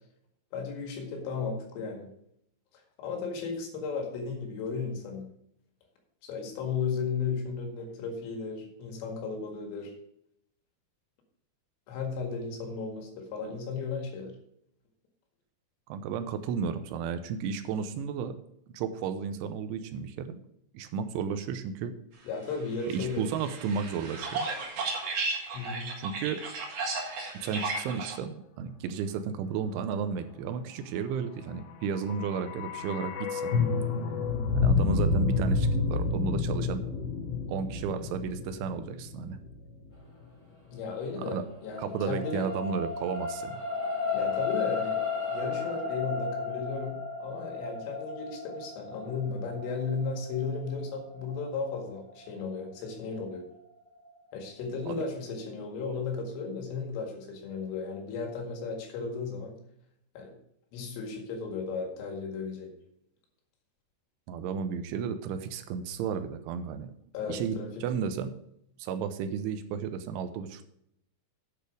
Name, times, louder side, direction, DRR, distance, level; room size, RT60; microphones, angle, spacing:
voice 1, 0.5-2.1 3.0-5.3 6.2-9.9 11.9-14.3 22.3-23.2 25.5-25.9 40.7-42.5 44.1-45.0 45.3-53.4 54.3-59.6 60.2-60.3 60.7-62.7 67.1-67.9, left 5 dB, 90° left, 2 dB, 4.5 m, -35 dB
voice 2, 15.9-18.3 18.7-20.4 20.7-21.9 22.9-24.5 26.0-26.4 27.3-33.6 34.6-36.8 37.5-39.4 41.3-41.4 41.8-43.6 54.9-55.0 64.3-66.9 67.3-68.4 68.8-70.6, right 6 dB, 80° right, 9 dB, 3.1 m, -33 dB
sound 1, 22.8-28.2, right 3 dB, 60° right, 1.8 m, -34 dB
sound 2, 31.8-40.0 40.2-40.3, left 4 dB, 65° left, 3.4 m, -29 dB
sound 3, 40.9-53.4 54.0-54.1, left 5 dB, 20° left, 1.2 m, -35 dB
9.1 x 8.3 x 5.0 m, 0.73 s
omnidirectional pair, 5.6 m